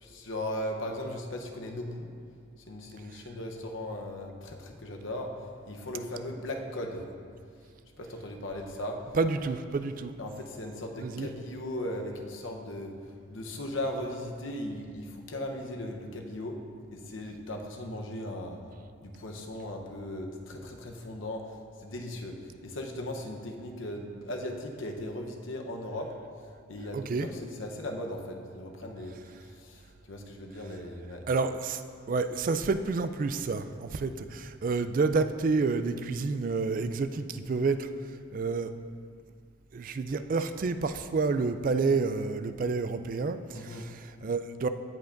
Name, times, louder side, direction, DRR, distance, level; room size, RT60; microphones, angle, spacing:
voice 1, 0.0-2.1 2.7-5.3 5.6-7.0 8.0-9.0 10.2-12.9 13.3-16.6 16.9-18.6 19.0-21.5 21.8-26.1 26.7-31.3 43.5-43.9, left 1 dB, 75° left, 2 dB, 0.9 m, -37 dB
voice 2, 9.1-10.1 11.0-11.3 26.9-27.3 31.3-31.8 32.1-37.9 38.3-38.7 39.7-44.7, right 4 dB, 40° right, 10 dB, 0.3 m, -29 dB
16.5 x 5.7 x 2.6 m, 2.2 s
head